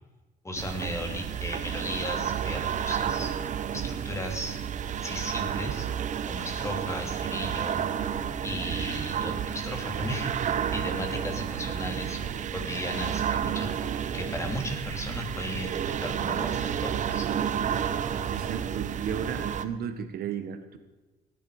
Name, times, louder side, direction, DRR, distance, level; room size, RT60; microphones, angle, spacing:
voice 1, 0.4-3.4 3.7-4.6 4.9-5.9 6.3-7.9 8.4-13.7 14.1-17.2, equal, 15° left, 4 dB, 2.7 m, -35 dB
sound 1, 0.6-19.7, right 8 dB, 45° right, 0.8 m, -31 dB
voice 2, 18.3-20.8, right 7 dB, 65° right, 8 dB, 1.4 m, -34 dB
18.5 x 10.0 x 4.9 m, 1.2 s
cardioid pair, 110°, 17 cm